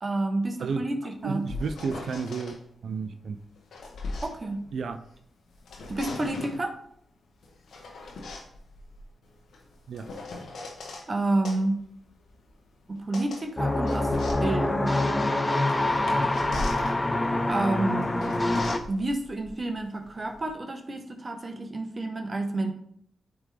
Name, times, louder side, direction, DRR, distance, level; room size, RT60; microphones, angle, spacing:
voice 1, 0.0-1.5 4.2-4.7 5.9-6.7 11.1-11.8 12.9-14.1 14.4-15.3 17.5-18.5 18.9-22.7, right 2 dB, 40° right, 4 dB, 1.1 m, -30 dB
sound 1, 1.2-2.6 3.4-5.2 5.5-6.7 7.4-11.1 11.4-20.5, left 2 dB, 75° left, 1.2 m, -40 dB
voice 2, 1.2-2.6 2.8-3.4 4.7-5.0 9.9-10.1, right 5 dB, 70° right, 8 dB, 0.5 m, -31 dB
sound 2, 13.6-18.8, left 2 dB, 25° left, 0.7 m, -25 dB
9.1 x 3.5 x 3.3 m, 0.67 s
cardioid pair, 55°, 0 cm